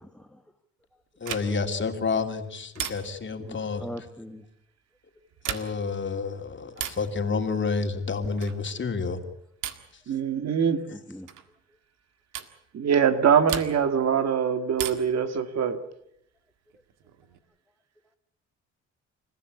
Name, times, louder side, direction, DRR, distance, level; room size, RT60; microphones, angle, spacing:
voice 1, 1.2-3.9 5.5-9.2, left 4 dB, 40° left, 5 dB, 3.0 m, -29 dB
sound 1, 1.2-1.8 2.8-3.4 5.3-5.9 6.7-7.1 8.4-8.7 9.6-10.0 11.3-11.5 12.3-12.6 13.5-14.0 14.8-15.2 16.7-17.4, right 10 dB, 85° right, 1.9 m, -36 dB
voice 2, 3.4-4.4 10.9-11.3, left 1 dB, 5° left, 5 dB, 1.5 m, -41 dB
voice 3, 10.1-10.8 12.7-15.8, right 7 dB, 60° right, 9 dB, 2.0 m, -23 dB
28.5 x 15.0 x 8.5 m, 0.74 s
cardioid pair, 90°, 30 cm